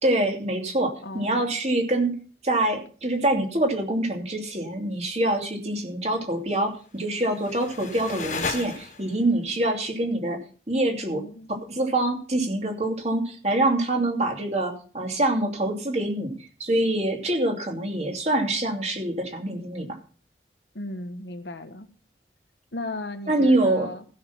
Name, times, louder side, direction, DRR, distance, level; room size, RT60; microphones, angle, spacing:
voice 1, 0.0-2.1 2.4-10.4 10.7-11.2 11.7-16.3 16.6-19.9 23.3-23.9, right 1 dB, 40° right, 2 dB, 2.8 m, -25 dB
voice 2, 1.0-1.5 11.1-11.5 20.7-21.9 22.7-24.0, left 2 dB, 85° left, 8 dB, 1.4 m, -36 dB
sound 1, 6.9-9.3, left 4 dB, 45° left, 1.5 m, -34 dB
15.0 x 6.7 x 5.8 m, 0.39 s
head